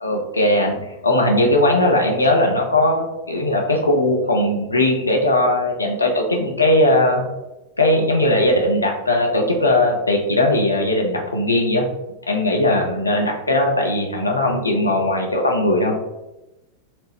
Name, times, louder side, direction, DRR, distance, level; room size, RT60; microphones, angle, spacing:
voice 1, 0.0-7.2 7.8-11.9 12.3-15.9, left 1 dB, 80° left, 0 dB, 0.5 m, -19 dB
4.2 x 2.0 x 2.8 m, 0.97 s
figure-of-eight pair, 90°, 0 cm